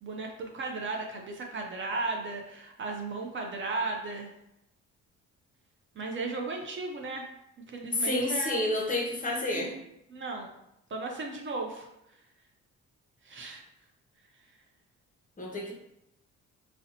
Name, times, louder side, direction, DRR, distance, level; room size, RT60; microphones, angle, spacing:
voice 1, 0.0-4.3 6.0-7.3 7.7-8.6 9.5-9.7 10.1-10.5 10.9-11.9 13.2-13.6, right 3 dB, 40° right, 1 dB, 0.4 m, -35 dB
voice 2, 7.9-9.7 15.4-15.7, left 2 dB, 25° left, -1 dB, 0.6 m, -29 dB
2.5 x 2.1 x 2.7 m, 0.83 s
cardioid pair, 90°, 30 cm